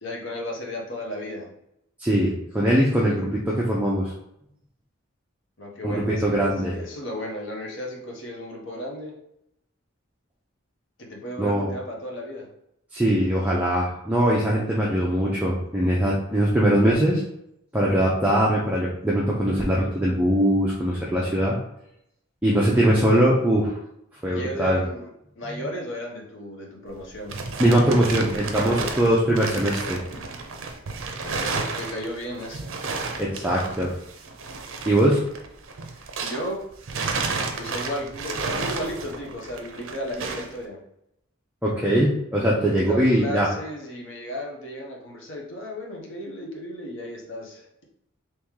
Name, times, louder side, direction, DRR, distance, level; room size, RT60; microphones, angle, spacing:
voice 1, 0.0-1.5 5.6-9.2 11.0-12.5 24.3-25.1 25.4-27.9 28.5-29.1 31.2-32.8 36.2-36.7 37.6-40.8 42.6-47.7, left 1 dB, 65° left, 0 dB, 0.9 m, -34 dB
voice 2, 2.0-4.1 5.8-6.7 11.4-11.7 12.9-17.2 17.7-21.6 22.4-23.7 24.2-24.8 27.6-30.0 33.2-33.9 34.9-35.2 41.6-43.5, right 1 dB, 5° right, -5 dB, 0.5 m, -21 dB
sound 1, 26.9-36.5 36.8-40.6, right 4 dB, 70° right, 0.5 m, -32 dB
3.0 x 3.0 x 3.6 m, 0.79 s
head